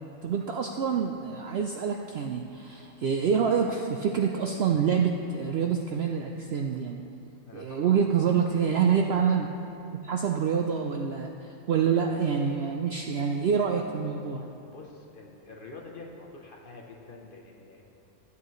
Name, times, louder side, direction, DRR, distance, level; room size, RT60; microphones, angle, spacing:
voice 1, 0.2-7.0 7.5-9.5 10.0-14.4, right 7 dB, 65° right, 2 dB, 0.6 m, -26 dB
voice 2, 7.5-7.9 14.6-17.8, left 3 dB, 45° left, -1 dB, 1.0 m, -46 dB
13.5 x 8.4 x 3.1 m, 2.7 s
omnidirectional pair, 1.5 m